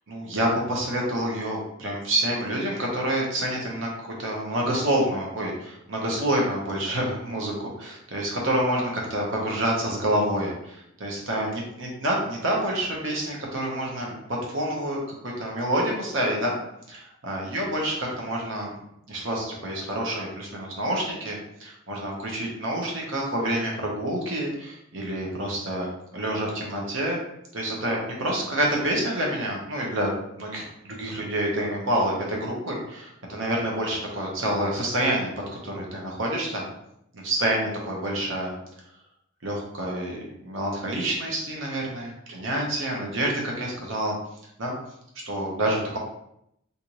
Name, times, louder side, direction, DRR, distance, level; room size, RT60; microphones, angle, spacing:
voice 1, 0.1-14.1 14.5-16.6 16.9-18.7 19.1-25.9 26.1-27.2 27.5-30.1 30.4-35.3 35.6-36.7 37.1-38.5 39.4-44.1 44.6-44.8 45.3-46.0, right 1 dB, 65° right, -2 dB, 0.9 m, -28 dB
3.4 x 2.6 x 3.0 m, 0.77 s
head